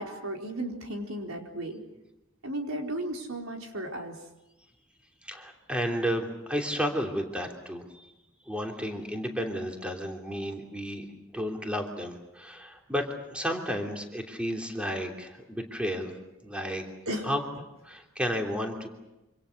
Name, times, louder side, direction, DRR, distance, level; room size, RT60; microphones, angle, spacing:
voice 1, 0.0-1.8 2.4-4.1 17.1-17.3, right 1 dB, 75° right, 2 dB, 4.5 m, -34 dB
voice 2, 5.2-8.1 8.5-11.1 11.3-16.1 16.4-16.8 17.2-17.4 17.8-18.9, equal, 5° right, 2 dB, 3.1 m, -32 dB
27.0 x 26.0 x 6.6 m, 0.96 s
head